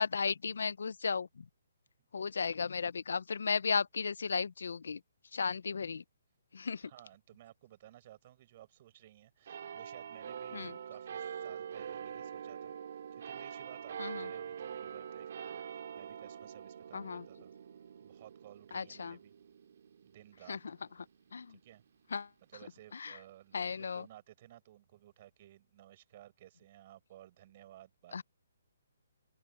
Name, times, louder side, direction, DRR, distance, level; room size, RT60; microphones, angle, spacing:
voice 1, 0.0-1.5 2.1-5.0 5.3-6.0 6.5-6.9 10.5-10.7 14.0-14.3 16.9-17.2 18.7-19.2 20.5-20.6 21.3-21.6 22.1-22.3 22.9-23.2 23.5-24.0 28.1-28.2, left 5 dB, 75° left, 0.7 m, -35 dB
voice 2, 6.8-17.5 18.0-19.3 20.0-20.8 21.5-21.8 22.5-28.2, right 13 dB, 40° right, 6.3 m, -57 dB
sound 1, 9.5-22.3 23.0-23.1, right 8 dB, 60° right, 3.0 m, -45 dB
open air
hypercardioid pair, 150°, 0 cm